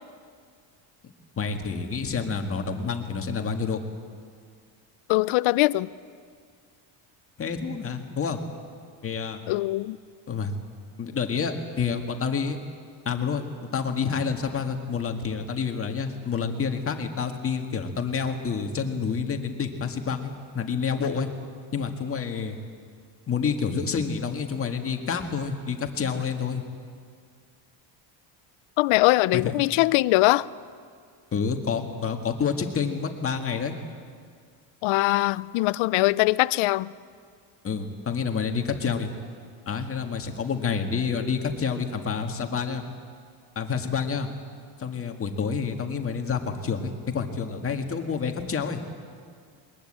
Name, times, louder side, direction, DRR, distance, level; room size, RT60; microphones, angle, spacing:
voice 1, 1.4-3.8 7.4-8.4 9.0-9.4 10.3-10.5 11.0-12.6 13.1-13.4 13.7-21.3 21.7-22.6 23.3-26.6 29.3-29.6 31.3-33.8 37.6-39.1 39.7-42.9 43.6-44.3 44.8-48.8, left 6 dB, 30° left, 5 dB, 1.8 m, -28 dB
voice 2, 5.1-5.9 9.5-10.0 28.8-30.4 34.8-36.9, left 19 dB, 80° left, 19 dB, 0.7 m, -21 dB
21.5 x 20.5 x 8.8 m, 2.1 s
cardioid pair, 155°, 47 cm